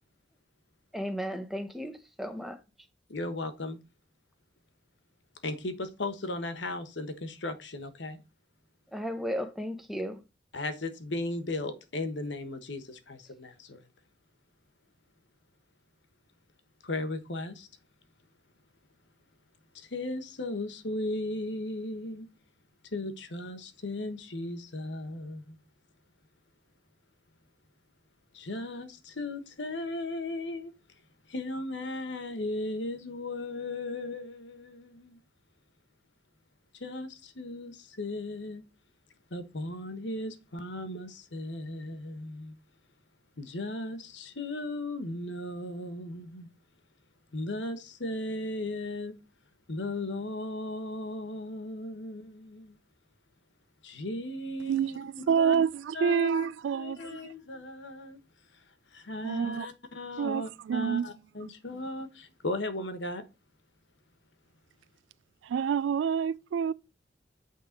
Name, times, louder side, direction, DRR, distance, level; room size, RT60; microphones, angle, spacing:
voice 1, 0.9-2.6 8.9-10.2, equal, ahead, 0.9 m, -35 dB
voice 2, 3.1-3.8 5.4-8.2 10.5-13.8 16.8-17.7 19.7-22.3 22.9-25.6 28.3-30.7 31.3-35.2 36.8-38.6 39.3-42.6 43.4-46.5 47.3-49.1 49.7-52.8 53.8-55.0 55.4-55.5 55.9-56.5 56.7-58.2 58.9-63.2, left 2 dB, 75° left, 1.2 m, -36 dB
voice 3, 54.6-57.3 59.2-59.7 60.2-61.1 61.4-61.5 65.4-66.7, right 7 dB, 90° right, 0.3 m, -28 dB
8.5 x 3.6 x 5.1 m
head